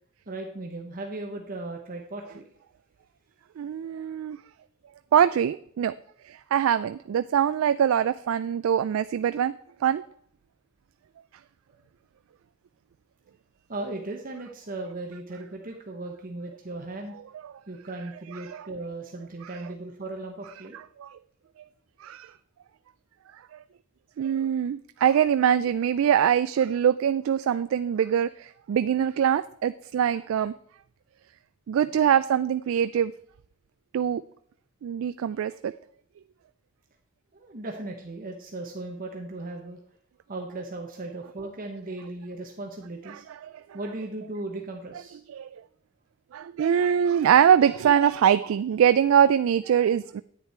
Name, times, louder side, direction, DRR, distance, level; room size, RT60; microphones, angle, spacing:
voice 1, 0.3-2.4 11.7-11.8 13.7-17.2 17.7-20.8 37.3-39.8 40.3-43.2 43.7-45.2, right 2 dB, 45° right, 2 dB, 1.0 m, -37 dB
voice 2, 3.6-4.4 5.1-5.9 6.3-9.5 9.8-10.0 18.5-18.6 21.0-21.1 22.0-22.3 24.2-30.5 31.7-33.1 33.9-34.2 34.8-35.7 43.4-43.5 45.4-45.5 46.3-50.2, right 9 dB, 75° right, 13 dB, 0.3 m, -23 dB
10.0 x 8.3 x 4.4 m, 0.66 s
head